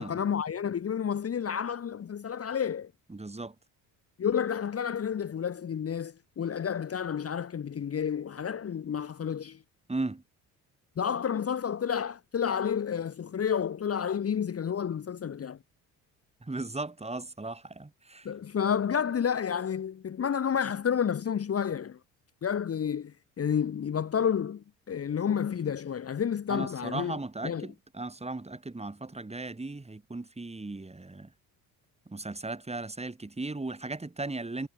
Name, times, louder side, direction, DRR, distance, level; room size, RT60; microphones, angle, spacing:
voice 1, 0.0-2.9 4.2-9.6 11.0-15.6 18.2-22.0 22.4-27.2 27.4-27.7, left 8 dB, 35° left, 1.2 m, -30 dB
voice 2, 3.1-3.6 9.9-10.2 16.4-18.3 26.5-31.3 32.1-34.7, right 2 dB, 15° right, 3.8 m, -37 dB
supercardioid pair, 65°, 39 cm